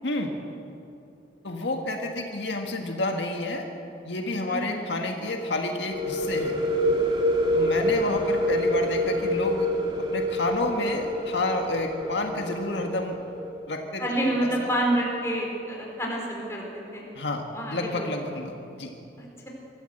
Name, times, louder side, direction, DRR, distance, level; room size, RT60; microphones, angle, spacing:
voice 1, 1.4-3.7 4.0-6.5 7.5-9.7 10.1-13.2 13.7-14.0 14.4-14.7 17.2-18.9, left 2 dB, 75° left, 2 dB, 1.7 m, -30 dB
voice 2, 4.5-4.9 14.0-17.0 17.5-18.1 19.2-19.5, right 1 dB, 15° left, -2 dB, 4.4 m, -28 dB
sound 1, 5.9-13.5, equal, 25° right, 2.4 m, -26 dB
24.0 x 14.0 x 8.0 m, 2.8 s
head